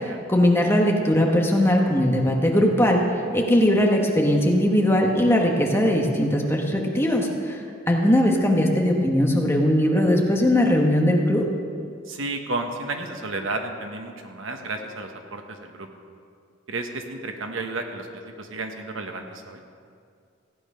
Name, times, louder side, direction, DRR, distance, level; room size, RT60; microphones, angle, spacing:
voice 1, 0.0-3.0 3.3-7.6 7.9-11.5, left 1 dB, 10° left, 0 dB, 1.1 m, -20 dB
voice 2, 12.1-15.9 16.7-19.6, right 2 dB, 70° right, 4 dB, 1.1 m, -32 dB
15.5 x 8.8 x 5.5 m, 2.3 s
head